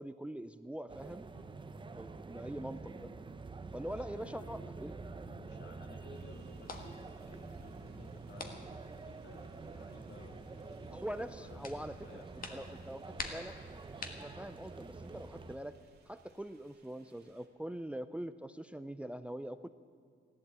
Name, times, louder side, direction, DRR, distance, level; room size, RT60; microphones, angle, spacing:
voice 1, 0.0-1.3 1.9-3.1 3.7-4.9 10.9-12.2 12.5-13.6 14.2-15.8 16.1-19.7, right 1 dB, 5° right, 13 dB, 0.4 m, -43 dB
sound 1, 0.9-15.6, right 3 dB, 25° right, 0.8 m, -48 dB
voice 2, 3.9-4.8 5.1-8.6 9.0-11.0 11.4-12.7, left 3 dB, 65° left, 4 dB, 2.2 m, -57 dB
sound 2, 6.1-17.5, right 4 dB, 55° right, 2.0 m, -68 dB
sound 3, 6.5-15.8, left 4 dB, 50° left, 1.5 m, -51 dB
15.0 x 12.0 x 8.2 m, 2.2 s
cardioid pair, 115°, 19 cm